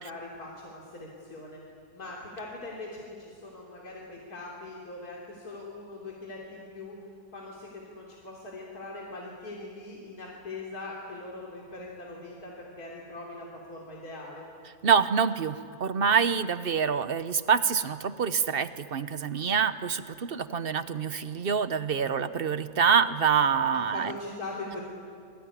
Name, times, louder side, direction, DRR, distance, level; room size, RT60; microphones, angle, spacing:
voice 1, 0.0-1.6 1.9-7.0 7.3-14.5 23.7-24.8, left 2 dB, 70° left, -3 dB, 3.8 m, -41 dB
voice 2, 14.8-24.1, right 6 dB, 45° right, 12 dB, 0.9 m, -26 dB
27.0 x 22.0 x 9.7 m, 2.4 s
omnidirectional pair, 1.7 m